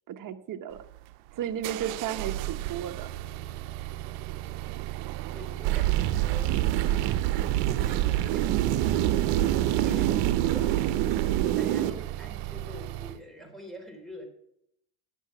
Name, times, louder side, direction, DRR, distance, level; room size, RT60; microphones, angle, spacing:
voice 1, 0.1-0.8 1.3-3.1, right 10 dB, 45° right, 7 dB, 1.2 m, -34 dB
sound 1, 0.7-13.2, right 15 dB, 85° right, 0.7 m, -37 dB
voice 2, 5.2-6.6 7.8-8.9 9.4-14.2, equal, ahead, 2 dB, 4.2 m, -46 dB
sound 2, 5.6-11.9, right 13 dB, 65° right, 1.0 m, -25 dB
10.5 x 8.2 x 6.1 m, 0.76 s
supercardioid pair, 100°, 46 cm